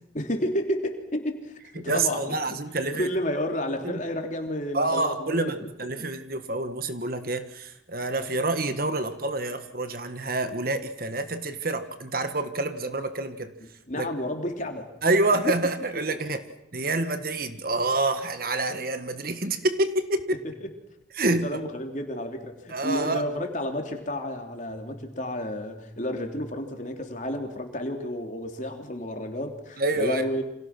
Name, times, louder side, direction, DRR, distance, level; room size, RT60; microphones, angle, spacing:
voice 1, 0.1-2.5 2.9-5.7 6.0-6.1 13.6-14.9 15.5-15.6 16.2-16.3 20.4-20.7 21.3-30.4, left 1 dB, 40° left, 4 dB, 3.3 m, -31 dB
voice 2, 1.7-3.1 3.8-4.0 4.7-13.5 14.0-14.1 15.0-16.4 16.7-20.3 21.2-21.5 22.7-23.2 29.8-30.2, right 2 dB, 50° right, 9 dB, 1.6 m, -27 dB
29.0 x 26.5 x 6.1 m, 0.82 s
head